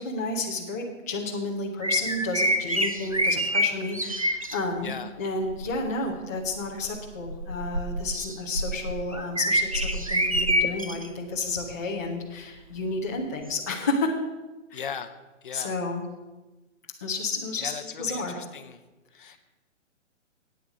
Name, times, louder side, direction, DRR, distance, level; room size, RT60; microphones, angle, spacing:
voice 1, 0.0-4.9 5.2-14.1 14.7-14.8 15.5-16.0 17.0-17.7 18.0-18.4 19.2-19.4, left 2 dB, 15° left, -4 dB, 0.6 m, -31 dB
sound 1, 1.8-4.6 5.4-5.8 6.4-11.1 11.6-11.7 13.5-13.6, equal, 30° right, 0.4 m, -27 dB
voice 2, 4.8-5.1 14.7-15.1 15.4-15.8 17.6-18.8 19.1-19.4, left 7 dB, 40° left, 9 dB, 0.8 m, -38 dB
9.0 x 8.5 x 8.1 m, 1.2 s
hypercardioid pair, 170°, 38 cm